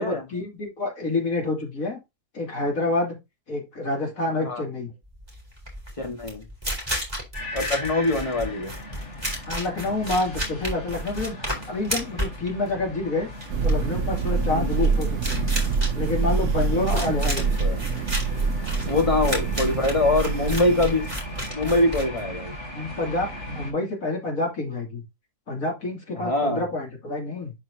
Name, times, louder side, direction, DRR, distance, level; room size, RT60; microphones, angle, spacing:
voice 1, 0.0-2.0 2.3-3.2 3.5-4.9 9.5-13.3 13.6-15.5 15.9-17.5 22.7-25.0 25.5-27.5, left 2 dB, 80° left, 3.1 m, -28 dB
sound 1, 5.2-22.6, equal, 15° right, 3.5 m, -33 dB
voice 2, 6.0-6.5 7.5-8.7 14.4-14.8 16.8-17.8 18.9-21.1 21.5-22.5 26.2-26.6, left 2 dB, 25° left, 1.7 m, -24 dB
sound 2, 7.3-23.7, left 1 dB, 55° left, 2.9 m, -39 dB
Thunder, 13.5-21.4, right 4 dB, 65° right, 1.1 m, -25 dB
11.5 x 4.5 x 2.8 m
omnidirectional pair, 1.4 m